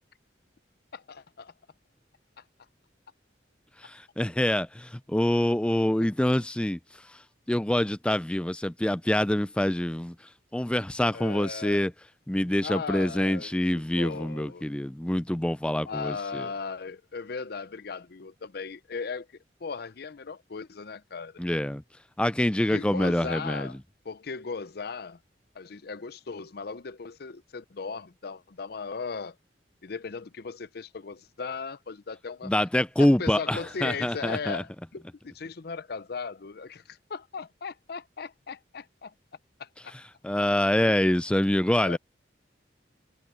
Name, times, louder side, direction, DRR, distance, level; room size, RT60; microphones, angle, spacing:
voice 1, 0.9-1.5 11.1-11.8 12.6-14.7 15.9-21.4 22.7-23.8 24.0-25.2 25.5-29.4 29.8-32.5 33.0-39.1 39.6-39.9 40.9-41.0 41.8-42.0, left 5 dB, 60° left, 0.6 m, -37 dB
voice 2, 3.8-6.8 7.1-7.2 7.5-10.2 10.5-11.9 12.3-16.5 21.4-21.8 22.2-23.7 32.4-34.6 40.2-42.0, left 1 dB, 5° left, 0.4 m, -26 dB
head